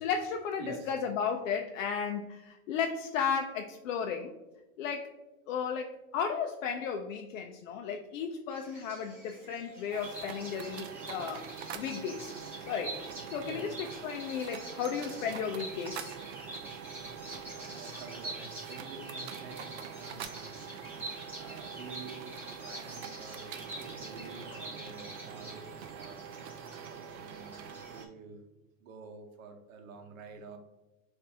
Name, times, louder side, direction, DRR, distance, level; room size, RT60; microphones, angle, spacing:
voice 1, 0.0-4.3 4.8-5.1 5.5-12.3 12.6-13.0 13.3-13.7 14.0-16.1, left 6 dB, 70° left, 3 dB, 0.5 m, -34 dB
voice 2, 0.6-0.9 7.9-8.0 13.4-13.7 15.2-15.3 17.6-20.5 21.4-26.3 26.8-28.4 28.8-30.6, right 4 dB, 75° right, 5 dB, 0.8 m, -48 dB
Bird vocalization bird call bird song, 8.5-28.0, right 1 dB, 5° right, 0.6 m, -46 dB
sound 1, 9.9-28.1, right 7 dB, 55° right, 0.5 m, -44 dB
6.2 x 2.6 x 2.7 m, 1.0 s
supercardioid pair, 170°, 41 cm